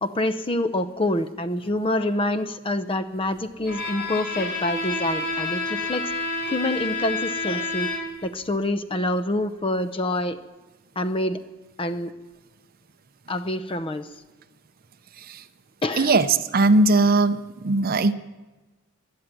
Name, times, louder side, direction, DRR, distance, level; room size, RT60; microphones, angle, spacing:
voice 1, 0.0-6.1 6.5-7.9 8.2-10.4 11.0-11.4 11.8-12.1 13.3-14.1 15.8-16.1, left 1 dB, 25° left, 11 dB, 0.6 m, -26 dB
Bowed string instrument, 3.6-8.3, left 3 dB, 50° left, 3.3 m, -29 dB
voice 2, 16.0-18.1, right 3 dB, 40° right, 12 dB, 0.6 m, -20 dB
14.0 x 11.5 x 9.0 m, 1.2 s
head